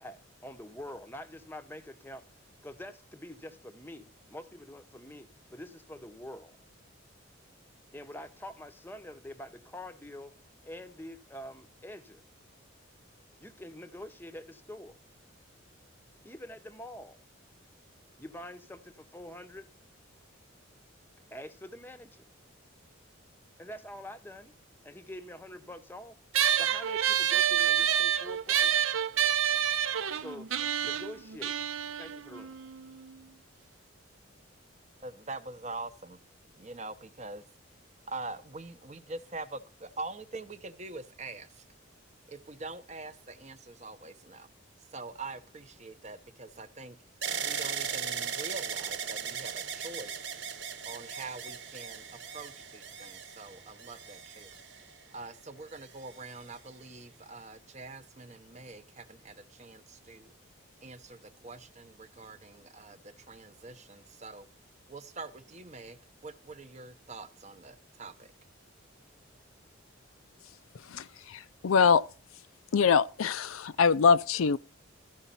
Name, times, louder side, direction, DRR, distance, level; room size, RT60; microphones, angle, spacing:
voice 1, 0.0-2.3 2.6-6.6 7.9-10.3 10.6-12.2 13.4-15.0 16.2-17.2 18.2-19.7 21.3-22.3 23.6-24.6 24.8-26.2 26.6-28.9 30.2-30.5 30.8-31.6 32.0-32.5, left 1 dB, 10° left, 0.7 m, -45 dB
sound 1, 26.3-33.1, right 9 dB, 80° right, 0.7 m, -28 dB
voice 2, 35.0-36.2 36.6-37.4 38.1-41.6 42.3-44.5 44.9-47.0 47.4-50.2 50.9-54.6 55.1-60.3 60.8-64.5 64.9-68.3, right 3 dB, 35° right, 0.7 m, -44 dB
sound 2, 47.2-55.2 55.9-56.6, right 7 dB, 55° right, 1.0 m, -38 dB
voice 3, 70.9-72.0 72.7-74.6, left 5 dB, 80° left, 0.5 m, -24 dB
13.5 x 5.0 x 5.5 m
head